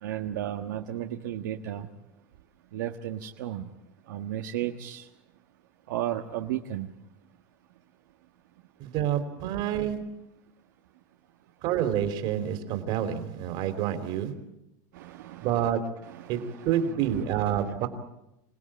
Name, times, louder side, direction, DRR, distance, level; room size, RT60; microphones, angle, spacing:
voice 1, 0.0-1.9 2.7-3.7 4.1-5.1 5.9-6.9 14.9-15.7 16.0-17.9, right 12 dB, 85° right, 3 dB, 1.4 m, -35 dB
voice 2, 8.8-10.1 11.6-14.4 15.4-16.0 16.3-17.9, right 10 dB, 55° right, 8 dB, 3.2 m, -28 dB
27.0 x 17.5 x 8.8 m, 0.87 s
supercardioid pair, 140°, 10 cm